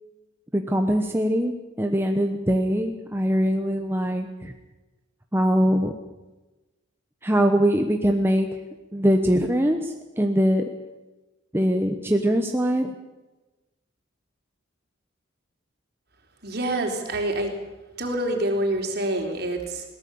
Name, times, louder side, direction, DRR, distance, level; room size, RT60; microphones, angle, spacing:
voice 1, 0.5-4.5 5.3-5.9 7.2-8.6 8.9-10.6 11.5-12.9, equal, 10° right, 4 dB, 1.1 m, -22 dB
voice 2, 16.4-17.5 18.0-19.8, right 1 dB, 50° right, 2 dB, 3.9 m, -26 dB
22.0 x 18.5 x 7.1 m, 1.1 s
head